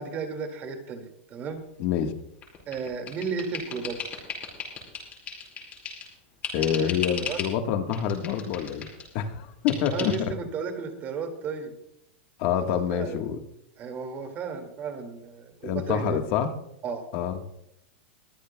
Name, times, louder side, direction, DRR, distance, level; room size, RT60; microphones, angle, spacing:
voice 1, 0.0-1.6 2.7-4.1 6.6-6.9 7.2-7.4 9.8-11.7 12.6-13.2 13.8-16.2 16.8-17.0, right 5 dB, 25° right, 5 dB, 2.2 m, -34 dB
voice 2, 1.8-2.1 6.5-8.9 9.1-10.3 12.4-13.4 15.6-16.5 17.1-17.4, left 9 dB, 45° left, 6 dB, 1.4 m, -27 dB
sound 1, 2.4-6.1 6.4-7.5 7.9-9.1 9.7-10.2, left 6 dB, 25° left, 5.5 m, -36 dB
23.0 x 14.5 x 2.3 m, 0.78 s
supercardioid pair, 160°, 6 cm